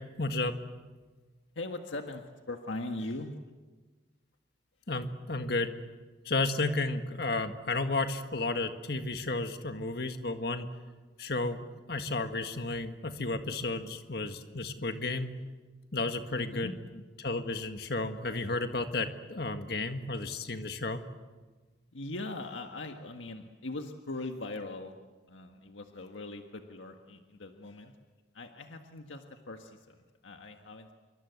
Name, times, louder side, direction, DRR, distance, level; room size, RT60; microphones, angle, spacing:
voice 1, 0.2-0.6 4.9-5.7 6.3-10.7 11.2-15.3 15.9-16.7 17.2-21.0, left 3 dB, 55° left, 7 dB, 1.8 m, -32 dB
voice 2, 1.5-3.4 16.3-16.7 21.9-24.9 25.3-27.9 28.3-30.9, left 2 dB, 85° left, 4 dB, 1.6 m, -40 dB
26.5 x 24.0 x 8.2 m, 1.3 s
head